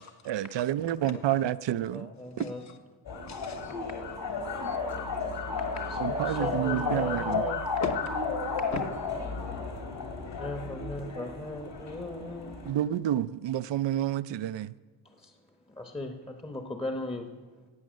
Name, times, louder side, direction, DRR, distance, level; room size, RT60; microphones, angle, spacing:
voice 1, 0.0-2.1 2.4-2.5 4.6-4.7 6.0-7.4 12.7-14.7, right 11 dB, 65° right, 0.5 m, -29 dB
voice 2, 1.1-1.5 1.9-2.6 3.7-4.0 5.6-7.6 8.6-8.7 10.4-12.6 15.0-15.4 15.7-17.3, left 2 dB, 10° left, 1.0 m, -38 dB
voice 3, 2.4-2.8 3.3-3.9 4.4-5.3 7.8-8.1 8.7-8.8, left 5 dB, 35° left, 1.1 m, -39 dB
sound 1, 3.1-12.7, left 4 dB, 60° left, 3.2 m, -33 dB
16.0 x 8.5 x 6.4 m
cardioid pair, 95°, 48 cm